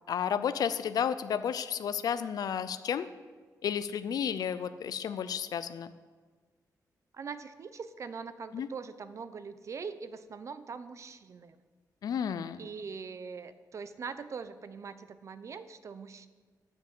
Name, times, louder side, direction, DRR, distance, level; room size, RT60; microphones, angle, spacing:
voice 1, 0.1-3.1 3.6-5.9 8.5-8.7 12.0-12.6, left 8 dB, 70° left, 12 dB, 0.5 m, -32 dB
voice 2, 7.1-11.6 12.6-16.3, right 5 dB, 50° right, 12 dB, 0.6 m, -42 dB
9.9 x 7.3 x 7.6 m, 1.4 s
wide cardioid pair, 130°, 7 cm